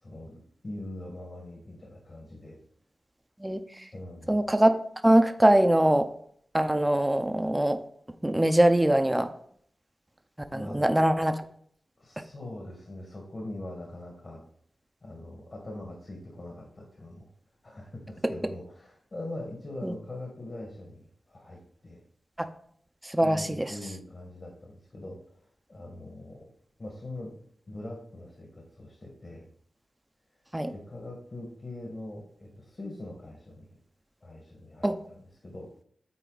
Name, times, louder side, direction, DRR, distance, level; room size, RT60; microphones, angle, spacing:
voice 1, 0.0-2.6 3.9-4.4 10.5-10.9 12.0-14.4 15.0-17.3 17.6-22.0 23.2-26.5 26.8-27.3 27.7-29.5 30.7-33.7 34.2-35.2 35.4-35.7, left 1 dB, 50° left, 0 dB, 1.9 m, -42 dB
voice 2, 3.4-3.8 4.3-4.7 5.0-6.1 6.5-7.8 8.2-9.3 10.5-11.4 19.8-19.9 22.4-22.5 23.0-23.7 30.5-30.7 34.8-35.0, right 1 dB, 15° right, 8 dB, 0.8 m, -23 dB
9.1 x 4.1 x 4.1 m, 0.64 s
cardioid pair, 45°, 0 cm